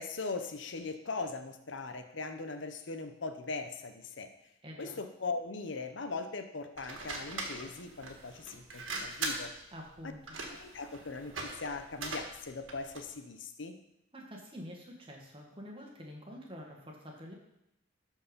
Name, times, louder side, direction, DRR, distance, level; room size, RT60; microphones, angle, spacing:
voice 1, 0.0-4.3 4.8-9.5 10.5-13.7, left 3 dB, 70° left, 8 dB, 0.8 m, -40 dB
voice 2, 4.6-5.0 9.7-10.4 14.1-17.3, equal, 25° right, -1 dB, 1.8 m, -47 dB
sound 1, 6.8-13.1, right 3 dB, 80° right, 1.8 m, -41 dB
12.5 x 4.6 x 5.3 m, 0.83 s
head